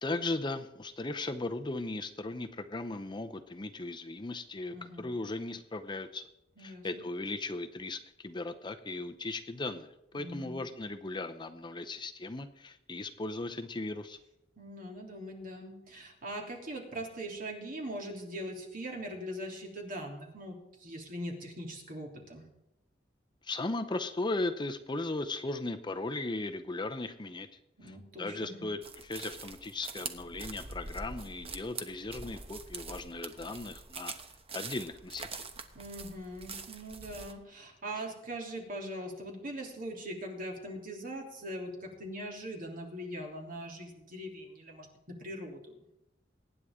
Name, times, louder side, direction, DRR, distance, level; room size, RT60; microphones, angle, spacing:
voice 1, 0.0-6.3 6.6-14.2 23.4-27.5 27.8-34.1 34.5-35.5, left 2 dB, 25° left, 9 dB, 0.7 m, -37 dB
voice 2, 4.7-5.1 6.6-7.0 10.2-10.6 14.6-22.4 27.8-28.7 35.7-44.9 45.2-45.8, right 1 dB, 45° right, 0 dB, 3.1 m, -41 dB
sound 1, 28.8-37.3, right 4 dB, 30° right, 1.1 m, -44 dB
23.5 x 9.8 x 3.7 m, 0.87 s
head